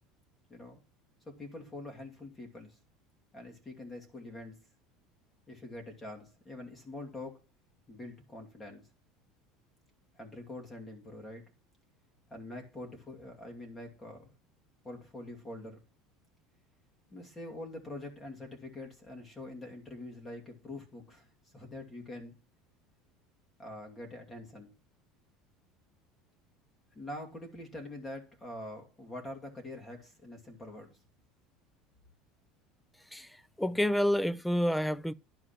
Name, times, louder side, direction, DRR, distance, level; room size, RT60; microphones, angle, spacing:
voice 1, 0.5-0.8 1.4-2.8 3.3-4.6 5.5-7.4 7.9-8.8 10.1-11.4 12.3-14.3 14.8-15.8 17.1-21.3 21.5-22.3 23.6-24.7 26.9-31.0, left 1 dB, 20° left, 2.6 m, -45 dB
voice 2, 33.6-35.1, equal, 5° left, 0.4 m, -28 dB
11.0 x 5.0 x 5.9 m
cardioid pair, 140°, 0 cm